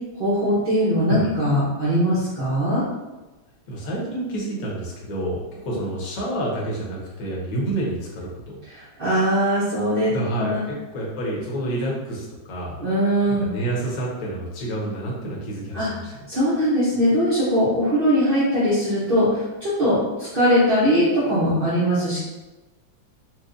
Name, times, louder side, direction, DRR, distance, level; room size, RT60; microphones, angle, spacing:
voice 1, 0.2-2.8 8.7-10.1 10.3-10.6 12.8-13.5 15.7-15.9 16.3-22.2, equal, 80° right, -10 dB, 0.5 m, -21 dB
voice 2, 3.7-8.6 10.1-12.8 13.3-16.1, right 1 dB, 55° left, -4 dB, 1.2 m, -29 dB
4.5 x 2.2 x 2.5 m, 1.1 s
omnidirectional pair, 2.2 m